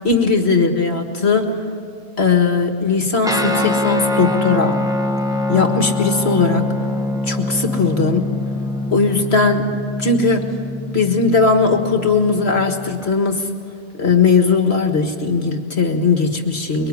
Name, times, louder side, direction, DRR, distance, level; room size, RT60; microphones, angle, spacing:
voice 1, 0.0-1.6 2.2-4.8 5.5-6.7 7.3-8.3 8.9-9.7 10.0-10.5 10.9-13.5 14.0-16.9, left 4 dB, 55° left, 5 dB, 2.0 m, -18 dB
Guitar, 3.2-13.1, left 1 dB, 5° right, 1.5 m, -24 dB
25.0 x 23.0 x 9.8 m, 2.2 s
omnidirectional pair, 1.3 m